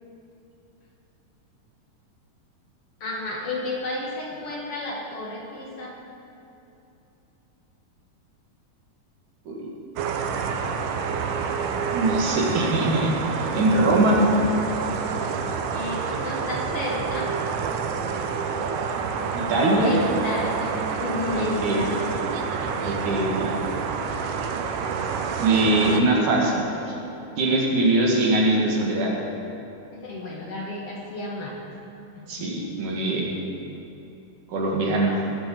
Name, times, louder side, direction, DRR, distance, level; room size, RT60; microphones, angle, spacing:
voice 1, 3.0-6.0 15.7-17.3 19.8-22.1 29.9-31.6 32.4-32.5, left 2 dB, 50° left, -3 dB, 2.5 m, -32 dB
sound 1, 10.0-26.0, right 5 dB, 90° right, 2.5 m, -28 dB
voice 2, 11.9-14.2 19.3-19.9 21.3-21.8 22.8-23.5 25.4-27.0 27.4-29.1 32.3-33.3 34.5-35.1, right 2 dB, 70° right, -2 dB, 3.4 m, -22 dB
17.5 x 8.4 x 7.0 m, 2.9 s
omnidirectional pair, 3.7 m